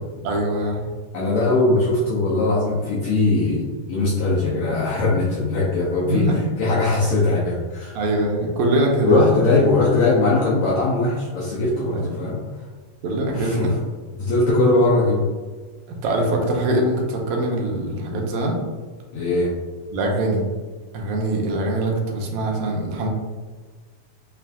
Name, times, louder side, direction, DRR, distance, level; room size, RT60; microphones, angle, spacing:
voice 1, 0.2-0.9 6.1-6.5 8.0-9.3 11.9-12.2 13.0-13.7 15.9-18.6 19.9-20.5 20.9-23.1, right 1 dB, 80° right, 0 dB, 2.0 m, -23 dB
voice 2, 1.1-6.3 6.6-8.0 9.0-12.4 13.3-13.7 14.2-15.2 19.1-19.5, left 2 dB, 80° left, -5 dB, 1.3 m, -20 dB
6.9 x 2.5 x 2.3 m, 1.4 s
omnidirectional pair, 3.4 m